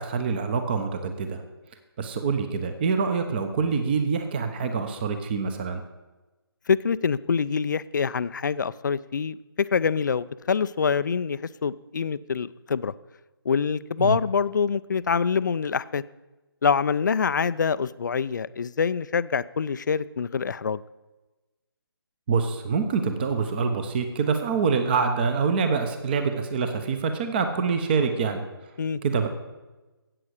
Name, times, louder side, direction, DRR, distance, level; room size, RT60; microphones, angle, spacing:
voice 1, 0.0-1.4 2.0-5.8 14.0-14.2 22.3-28.4 29.0-29.3, right 5 dB, 25° right, 8 dB, 0.9 m, -25 dB
voice 2, 6.7-12.9 13.5-16.0 16.6-20.8 28.8-29.0, left 6 dB, 50° left, 16 dB, 0.5 m, -25 dB
13.5 x 8.6 x 6.5 m, 1.1 s
figure-of-eight pair, 160°, 13 cm